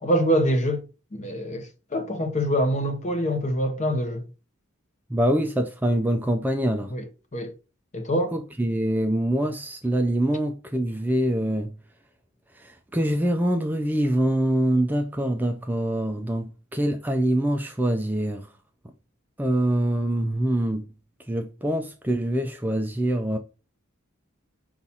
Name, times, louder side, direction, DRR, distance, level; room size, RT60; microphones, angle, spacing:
voice 1, 0.0-0.8 1.1-4.2 6.9-7.1 7.3-7.5 7.9-8.3, equal, 35° left, 0.7 m, -25 dB
voice 2, 5.1-6.9 8.3-11.7 12.6-18.5 19.4-20.8 21.3-23.4, right 1 dB, 10° right, 0.3 m, -24 dB
5.5 x 2.4 x 4.1 m
head